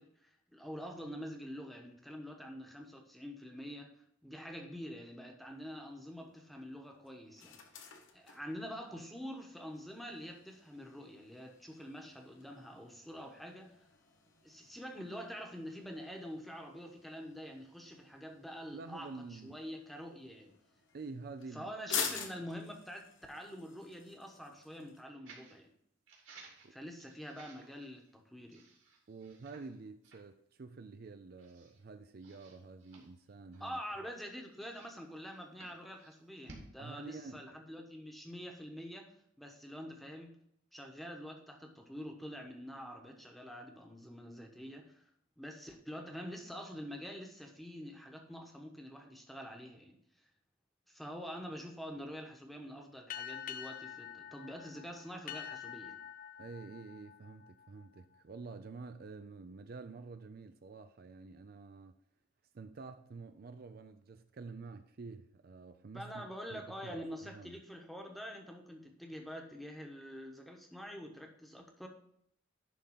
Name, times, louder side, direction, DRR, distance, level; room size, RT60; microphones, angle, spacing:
voice 1, 0.0-3.9 4.2-7.6 8.1-13.7 14.4-20.5 21.5-25.7 26.7-28.6 33.6-39.1 39.4-40.3 40.7-45.0 45.4-50.0 50.9-56.0 65.9-71.9, equal, ahead, 1.1 m, -46 dB
sound 1, 5.4-25.0, left 7 dB, 80° left, 1.1 m, -48 dB
voice 2, 18.7-19.6 20.9-21.7 22.1-22.3 26.6-26.7 29.1-34.1 36.8-37.6 56.4-62.0 62.5-67.6, right 4 dB, 50° right, 0.4 m, -49 dB
sound 2, 25.3-25.6 26.1-28.1 28.5-29.8 30.0-30.2 30.8-30.9 31.4-31.8 32.2-33.9 34.5-36.7, right 3 dB, 75° right, 2.2 m, -58 dB
sound 3, 53.1-58.2, left 9 dB, 45° left, 0.4 m, -47 dB
11.0 x 3.7 x 5.5 m
head